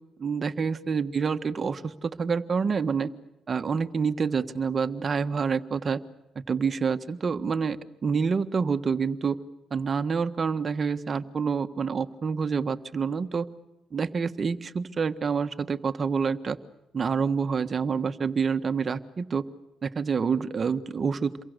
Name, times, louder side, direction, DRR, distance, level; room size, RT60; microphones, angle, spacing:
voice 1, 0.2-3.1 3.5-6.0 6.3-9.4 9.7-13.5 13.9-16.6 16.9-19.4 19.8-21.4, right 5 dB, 40° right, 10 dB, 1.4 m, -27 dB
28.5 x 23.0 x 6.7 m, 0.94 s
cardioid pair, 90°, 0 cm